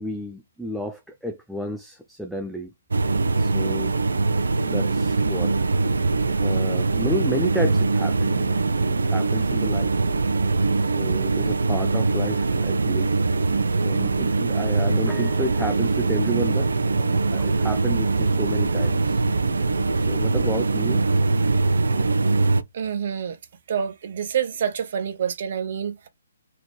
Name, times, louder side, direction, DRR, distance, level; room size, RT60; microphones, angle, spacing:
voice 1, 0.0-2.7 3.4-4.0 4.6-5.6 6.4-8.6 8.9-9.9 10.8-13.1 13.8-19.2 20.1-21.1, equal, ahead, 0.4 m, -31 dB
sound 1, 2.9-22.6, right 3 dB, 70° right, 0.5 m, -22 dB
voice 2, 22.7-23.4 23.7-25.9, right 8 dB, 50° right, 1.0 m, -27 dB
4.0 x 2.9 x 3.1 m
figure-of-eight pair, 135°, 0 cm